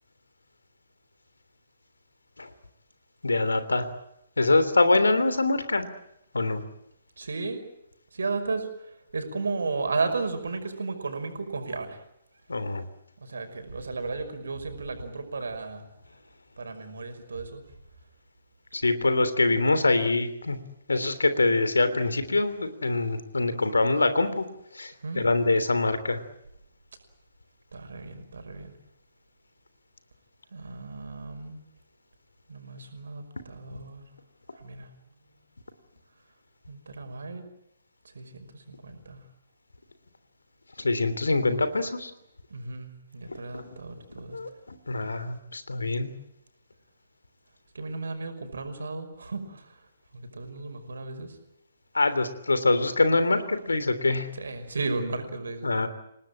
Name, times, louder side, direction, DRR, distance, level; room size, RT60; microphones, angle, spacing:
voice 1, 3.2-3.9 4.4-5.9 6.3-6.6 12.5-12.8 18.7-20.6 20.9-24.4 24.7-26.2 40.8-42.1 43.3-43.8 44.3-46.1 51.9-54.3 55.6-55.9, left 2 dB, 70° left, 11 dB, 3.2 m, -24 dB
voice 2, 7.2-7.6 8.1-12.0 13.2-15.9 16.6-17.7 25.0-25.3 27.7-28.7 30.5-31.6 32.5-34.1 34.6-34.9 36.7-37.4 38.1-39.2 42.5-44.4 47.7-49.7 50.1-51.4 54.4-55.7, right 3 dB, 65° right, 6 dB, 5.5 m, -34 dB
29.5 x 19.0 x 8.9 m, 0.81 s
figure-of-eight pair, 130°, 0 cm